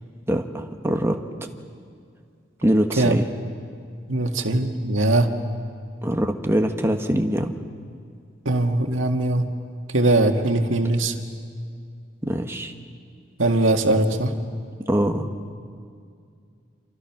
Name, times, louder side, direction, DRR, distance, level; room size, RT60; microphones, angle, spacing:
voice 1, 0.3-1.2 2.6-3.3 6.0-7.6 12.2-12.7 14.9-15.3, equal, 15° right, 5 dB, 1.4 m, -23 dB
voice 2, 4.1-5.3 8.5-9.5 9.9-11.1 13.4-14.3, right 2 dB, 85° right, 4 dB, 1.9 m, -20 dB
28.0 x 27.5 x 6.0 m, 2.3 s
head